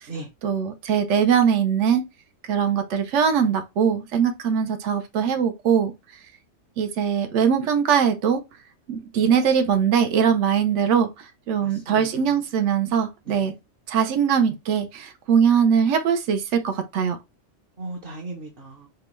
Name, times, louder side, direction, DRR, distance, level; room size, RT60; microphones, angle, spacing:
voice 1, 0.4-2.0 2.5-5.9 6.8-8.4 8.9-13.5 13.9-17.2, right 7 dB, 80° right, 1.0 m, -21 dB
voice 2, 11.6-12.1 13.3-13.4 17.8-18.9, right 2 dB, 50° right, 1.0 m, -37 dB
5.2 x 2.2 x 3.0 m
omnidirectional pair, 1.2 m